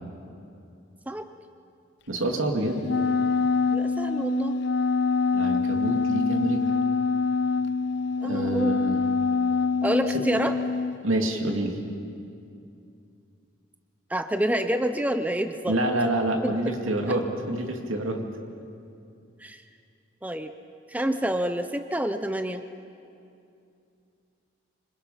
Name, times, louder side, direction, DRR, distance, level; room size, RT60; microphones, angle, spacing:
voice 1, 2.1-2.9 5.3-6.6 8.2-9.0 10.1-10.2 11.0-11.8 15.7-18.2, right 1 dB, 80° right, 3 dB, 2.5 m, -27 dB
Wind instrument woodwind instrument, 2.8-11.0, left 4 dB, 55° left, 0.5 m, -25 dB
voice 2, 3.7-4.6 8.2-8.7 9.8-10.5 14.1-15.8 16.4-16.5 19.4-19.6 20.2-20.5 20.9-22.6, right 1 dB, 5° right, 8 dB, 0.6 m, -27 dB
26.0 x 26.0 x 5.7 m, 2.6 s
head